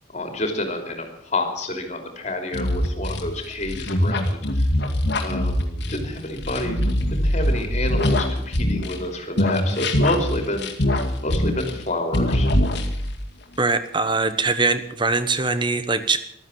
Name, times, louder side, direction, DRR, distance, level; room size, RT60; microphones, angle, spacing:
voice 1, 0.1-4.7 5.2-6.8 7.1-10.7 11.2-12.5, left 1 dB, 35° left, 4 dB, 3.2 m, -29 dB
sound 1, 2.5-9.1 9.4-11.9 12.1-13.2, left 1 dB, 55° left, 2.1 m, -23 dB
voice 2, 13.6-16.2, right 3 dB, 25° right, 11 dB, 1.1 m, -22 dB
14.5 x 13.0 x 7.3 m, 0.71 s
head